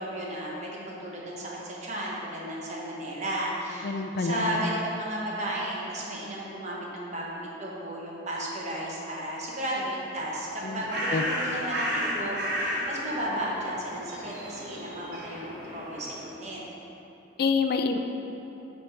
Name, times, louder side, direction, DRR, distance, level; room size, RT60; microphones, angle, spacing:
voice 1, 0.0-3.9 4.2-16.6, right 1 dB, 40° right, -4 dB, 1.2 m, -34 dB
voice 2, 3.8-4.6 10.6-10.8 11.1-11.2 17.4-18.0, left 4 dB, 55° left, 6 dB, 0.4 m, -27 dB
Bird, 10.4-16.4, equal, 60° right, 1.4 m, -33 dB
8.3 x 3.4 x 5.8 m, 3.0 s
head